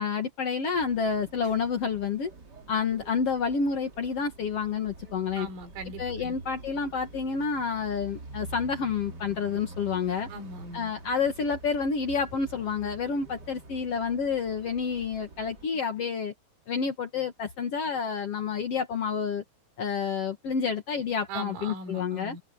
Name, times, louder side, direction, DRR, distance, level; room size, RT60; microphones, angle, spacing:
voice 1, 0.0-2.3 2.7-5.5 6.0-10.3 10.7-16.3 16.7-19.4 19.8-22.4, left 5 dB, 75° left, 1.4 m, -29 dB
sound 1, 0.7-15.7, right 2 dB, 30° right, 2.1 m, -46 dB
voice 2, 5.4-6.3 10.3-10.9 21.3-22.4, right 3 dB, 90° right, 6.6 m, -40 dB
omnidirectional pair, 5.7 m